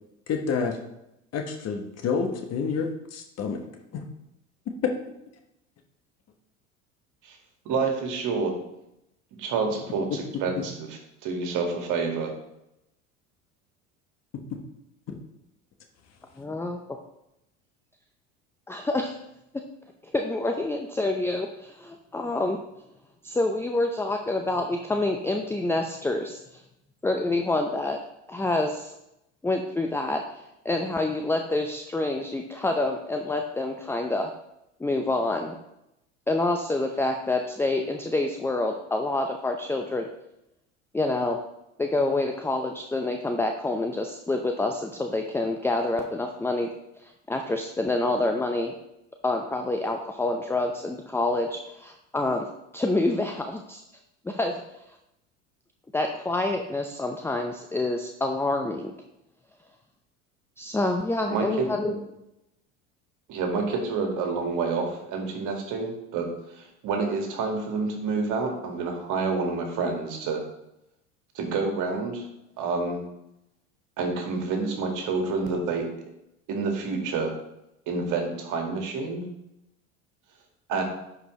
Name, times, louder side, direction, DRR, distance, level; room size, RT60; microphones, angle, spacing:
voice 1, 0.3-0.8 1.3-3.6 3.9-4.1 4.7-4.9 10.1-10.2 10.6-10.7 14.5-14.6 15.1-15.2, left 6 dB, 45° left, 4 dB, 1.4 m, -28 dB
voice 2, 7.7-8.5 9.4-12.3 61.3-62.0 63.3-66.3 66.5-70.4 71.3-72.3 72.6-73.0 74.0-75.9 76.5-77.3 77.9-79.2 80.7-80.8, right 4 dB, 55° right, 3 dB, 2.0 m, -28 dB
voice 3, 16.4-16.8 18.7-19.1 20.1-22.6 23.2-26.6 27.0-28.0 28.3-28.9 29.4-34.3 34.8-35.6 36.3-40.1 40.9-41.4 41.8-46.7 47.0-48.7 49.2-52.5 52.7-53.8 54.2-54.6 55.9-58.9 60.6-61.9, left 2 dB, 5° left, 4 dB, 0.6 m, -27 dB
11.0 x 4.8 x 3.2 m, 0.85 s
hypercardioid pair, 75°, 37 cm